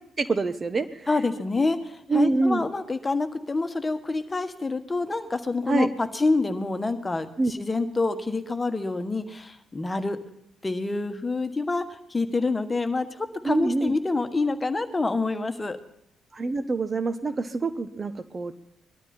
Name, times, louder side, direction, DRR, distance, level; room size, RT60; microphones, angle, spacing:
voice 1, 0.2-1.1 2.1-2.6 5.7-5.9 7.4-7.5 9.9-10.0 13.4-14.0 16.3-18.5, right 3 dB, 35° right, 13 dB, 1.0 m, -26 dB
voice 2, 1.1-10.2 10.6-15.8, left 3 dB, 25° left, 9 dB, 1.5 m, -27 dB
20.0 x 12.5 x 4.4 m, 0.73 s
hypercardioid pair, 45°, 0 cm